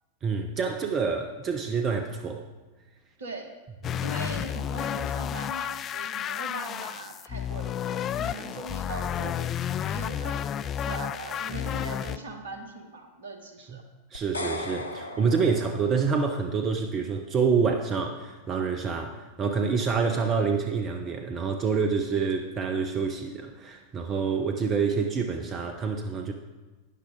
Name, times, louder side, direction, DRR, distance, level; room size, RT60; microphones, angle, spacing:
voice 1, 0.2-2.4 3.9-4.0 14.1-26.3, right 5 dB, 30° right, 5 dB, 0.8 m, -27 dB
voice 2, 3.2-3.5 4.0-10.4 10.8-13.8, right 2 dB, 65° right, 4 dB, 1.5 m, -40 dB
sound 1, 3.8-12.2, left 9 dB, 30° left, 0.3 m, -31 dB
sound 2, 14.1-16.4, left 2 dB, 80° left, 0.7 m, -37 dB
12.0 x 9.8 x 3.7 m, 1.2 s
figure-of-eight pair, 90°, 0 cm